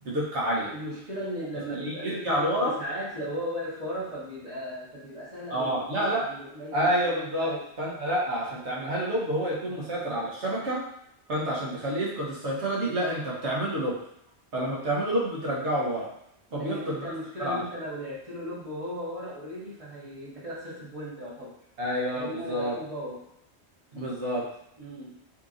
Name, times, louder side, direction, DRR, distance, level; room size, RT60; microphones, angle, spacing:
voice 1, 0.0-0.7 1.7-2.7 5.5-6.2 6.7-10.8 11.3-13.9 14.5-16.1 16.5-17.0 17.4-17.6 21.8-22.7 23.9-24.5, right 1 dB, 80° right, -5 dB, 1.4 m, -28 dB
voice 2, 0.7-6.9 7.4-7.7 9.7-9.8 16.5-21.6 22.1-23.3 24.8-25.1, equal, 30° right, -9 dB, 1.3 m, -37 dB
4.3 x 2.9 x 2.5 m, 0.78 s
omnidirectional pair, 1.1 m